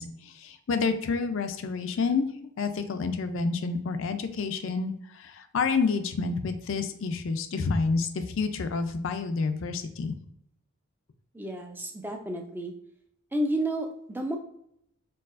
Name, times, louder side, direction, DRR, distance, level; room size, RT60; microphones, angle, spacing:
voice 1, 0.0-2.3 2.6-10.1, left 4 dB, 60° left, 8 dB, 0.4 m, -29 dB
voice 2, 11.3-12.7 13.3-14.4, right 1 dB, 10° right, 4 dB, 0.4 m, -31 dB
4.5 x 4.0 x 2.4 m, 0.73 s
head